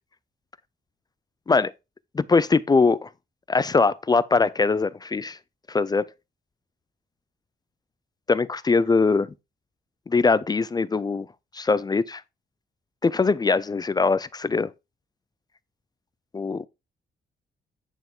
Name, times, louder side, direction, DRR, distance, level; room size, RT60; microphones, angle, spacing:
voice 1, 2.1-3.1 3.5-5.4 5.7-6.1 8.3-9.3 10.1-11.3 11.5-12.2 13.0-14.7 16.3-16.7, left 4 dB, 20° left, 0.3 m, -22 dB
9.1 x 5.6 x 3.7 m
wide cardioid pair, 155°, 19 cm